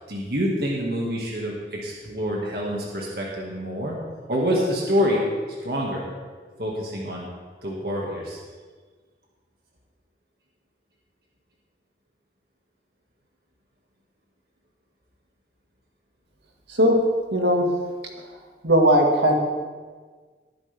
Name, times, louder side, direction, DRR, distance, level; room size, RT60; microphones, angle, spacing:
voice 1, 0.0-4.0 4.3-5.3 5.6-6.1 6.6-7.3 7.6-8.4, equal, 60° right, -3 dB, 2.2 m, -26 dB
voice 2, 16.7-17.0 17.3-17.7 18.6-19.4, equal, 85° right, 1 dB, 2.2 m, -18 dB
19.5 x 10.0 x 3.6 m, 1.5 s
head